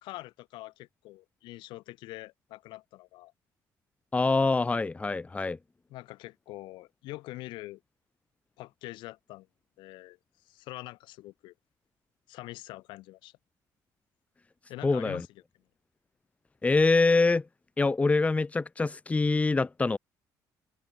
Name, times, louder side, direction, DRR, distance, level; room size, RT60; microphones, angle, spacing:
voice 1, 0.0-3.3 5.9-7.8 8.6-9.5 9.8-10.2 10.5-11.5 12.3-13.3 14.7-15.3, left 18 dB, 85° left, 4.5 m, -44 dB
voice 2, 4.1-5.6 14.8-15.3 16.6-17.5 17.8-20.0, left 3 dB, 15° left, 1.2 m, -25 dB
cardioid pair, 105°, 8 cm